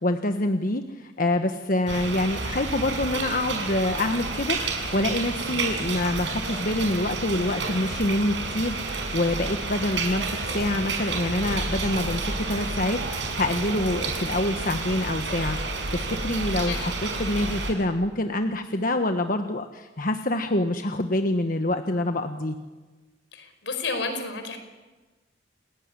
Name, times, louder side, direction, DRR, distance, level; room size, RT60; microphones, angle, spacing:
voice 1, 0.0-22.5, left 1 dB, 50° left, 6 dB, 1.3 m, -26 dB
sound 1, 1.9-17.7, right 3 dB, 80° right, 6.3 m, -30 dB
voice 2, 23.3-24.6, left 3 dB, 80° left, 7 dB, 5.1 m, -31 dB
28.5 x 18.0 x 9.9 m, 1.3 s
head